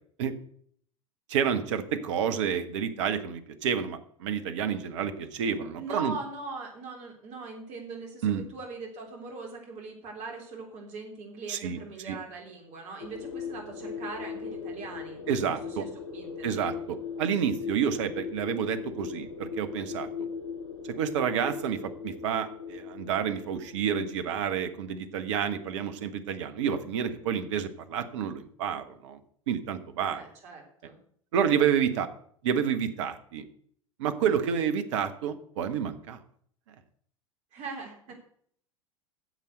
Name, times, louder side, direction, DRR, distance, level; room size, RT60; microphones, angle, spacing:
voice 1, 1.3-6.1 8.2-8.5 11.5-11.8 12.0-12.2 15.3-15.8 16.4-20.3 20.9-29.2 29.5-30.2 31.3-32.1 32.4-33.4 34.0-36.2, right 8 dB, 60° right, 9 dB, 1.4 m, -29 dB
voice 2, 5.8-16.8 30.1-31.0 37.5-38.1, right 3 dB, 40° right, 1 dB, 3.7 m, -41 dB
sound 1, 13.0-24.9, left 6 dB, 75° left, 1.0 m, -39 dB
9.5 x 7.5 x 8.0 m, 0.62 s
figure-of-eight pair, 80°, 18 cm